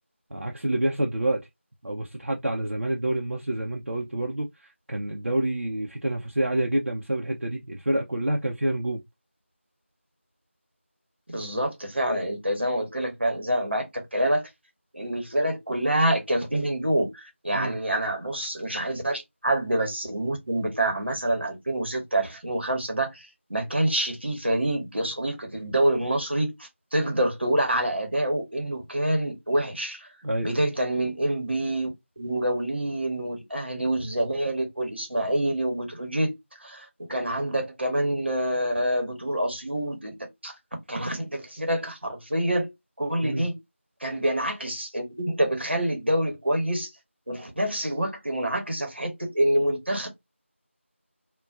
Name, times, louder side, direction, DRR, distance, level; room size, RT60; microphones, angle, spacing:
voice 1, 0.3-1.4 1.8-9.0 17.5-17.8 30.2-30.5 43.2-43.5, right 1 dB, 75° right, 0.5 m, -28 dB
voice 2, 11.3-14.5 14.9-30.1 30.4-31.9 32.2-36.3 36.6-40.1 40.4-40.5 40.9-42.7 43.0-43.6 44.0-46.9 47.3-50.1, right 1 dB, 55° right, 0.9 m, -27 dB
2.4 x 2.2 x 2.3 m
figure-of-eight pair, 175°, 7 cm